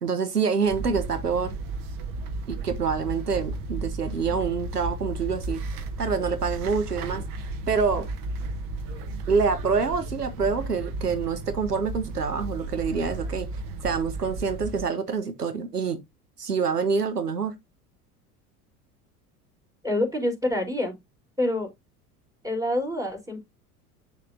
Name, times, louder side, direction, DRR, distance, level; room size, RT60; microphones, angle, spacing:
voice 1, 0.0-1.6 2.5-7.2 7.7-8.1 9.3-13.5 13.8-16.0 16.4-17.5, right 5 dB, 85° right, 1.0 m, -26 dB
sound 1, 0.6-14.8, right 2 dB, 45° right, 1.5 m, -34 dB
voice 2, 19.8-21.0 21.4-21.7 22.4-23.4, left 1 dB, 5° right, 3.7 m, -26 dB
8.3 x 6.5 x 2.6 m
figure-of-eight pair, 70°, 46 cm